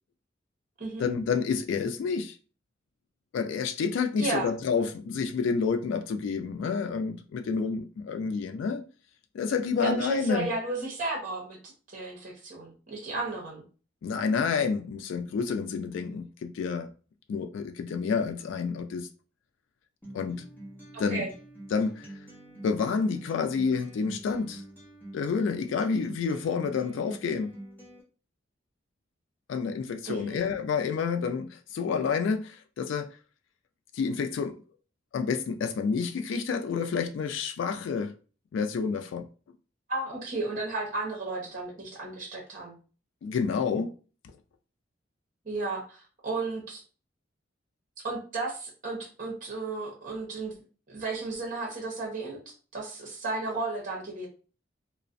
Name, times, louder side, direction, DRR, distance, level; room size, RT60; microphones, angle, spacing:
voice 1, 1.0-2.4 3.3-8.8 9.3-10.5 14.0-16.9 17.3-19.1 20.1-20.5 21.0-21.3 21.7-22.1 22.6-24.6 25.1-27.5 29.5-33.1 33.9-34.6 35.1-38.1 38.5-39.2 43.2-43.9, left 5 dB, 75° left, 0.3 m, -29 dB
voice 2, 4.2-4.5 9.8-11.6 11.9-13.6 20.9-21.3 30.1-30.4 39.9-42.8 45.4-46.8 48.0-50.6 50.9-54.3, right 3 dB, 45° right, 0.9 m, -33 dB
Acoustic guitar, 20.0-28.0, right 1 dB, 10° left, 0.8 m, -46 dB
2.4 x 2.0 x 2.5 m
head